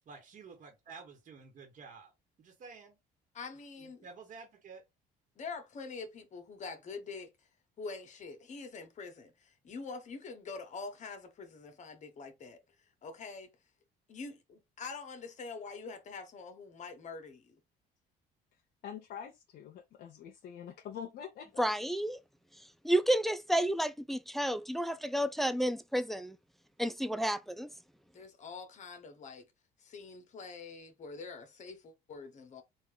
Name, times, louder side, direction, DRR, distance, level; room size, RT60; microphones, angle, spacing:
voice 1, 0.1-2.1 2.4-3.0 3.8-4.8, right 4 dB, 50° right, 1.2 m, -51 dB
voice 2, 3.3-4.1 5.4-7.3 7.8-12.6 13.0-13.5 14.1-17.5 28.1-29.4 29.8-32.6, left 4 dB, 45° left, 1.0 m, -45 dB
voice 3, 18.8-21.6, left 8 dB, 65° left, 0.8 m, -45 dB
voice 4, 21.6-22.2 22.8-26.4 26.8-27.7, right 1 dB, ahead, 0.4 m, -31 dB
3.6 x 2.5 x 3.8 m
cardioid pair, 110°, 17 cm